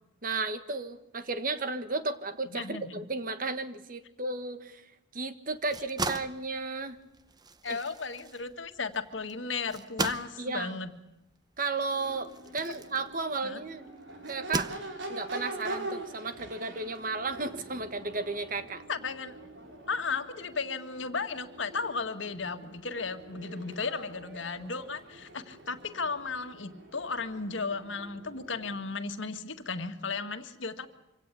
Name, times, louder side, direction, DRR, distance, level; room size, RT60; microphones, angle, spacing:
voice 1, 0.2-4.8 5.1-7.0 7.7-7.8 10.4-10.8 11.6-13.9 14.2-14.7 15.1-18.8, right 3 dB, 50° right, 10 dB, 1.6 m, -34 dB
voice 2, 2.5-3.0 7.6-10.9 12.1-12.2 13.4-13.6 18.9-19.3 19.9-30.9, left 4 dB, 85° left, 8 dB, 1.8 m, -35 dB
sound 1, 5.5-13.6 14.2-15.3, right 3 dB, 20° right, 0.8 m, -38 dB
Crowd / Race car auto racing / Accelerating revving vroom, 11.8-28.9, right 1 dB, 80° right, 4.8 m, -44 dB
25.5 x 17.5 x 8.4 m, 0.90 s
head